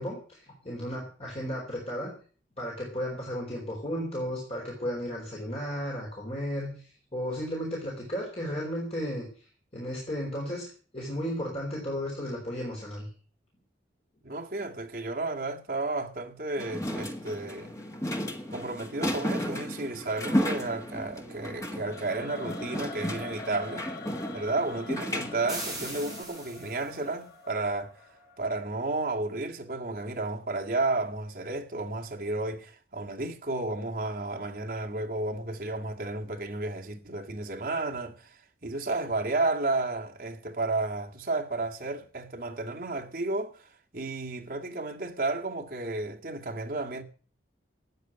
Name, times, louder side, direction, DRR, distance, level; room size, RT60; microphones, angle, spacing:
voice 1, 0.0-2.1 2.6-9.3 9.7-10.7 10.9-13.1, equal, 35° left, 4.4 m, -34 dB
voice 2, 14.2-17.7 18.5-23.9 24.3-28.0 28.4-47.0, right 2 dB, 50° right, 2.0 m, -32 dB
sound 1, 16.6-26.2, equal, 15° left, 1.7 m, -34 dB
Singing / Musical instrument, 21.8-28.9, left 2 dB, 60° left, 3.4 m, -45 dB
sound 2, 25.5-27.0, right 1 dB, ahead, 7.0 m, -39 dB
13.5 x 9.4 x 8.9 m
head